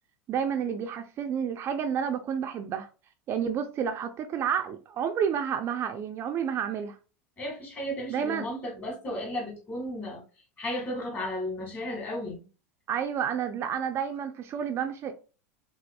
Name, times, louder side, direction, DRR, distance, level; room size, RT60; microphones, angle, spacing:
voice 1, 0.3-2.9 3.3-7.0 8.1-8.5 12.9-15.1, right 8 dB, 35° right, 0.4 m, -30 dB
voice 2, 7.4-10.2 10.6-12.4, left 1 dB, 25° left, 1.4 m, -34 dB
4.2 x 2.3 x 2.2 m
supercardioid pair, 125°, 8 cm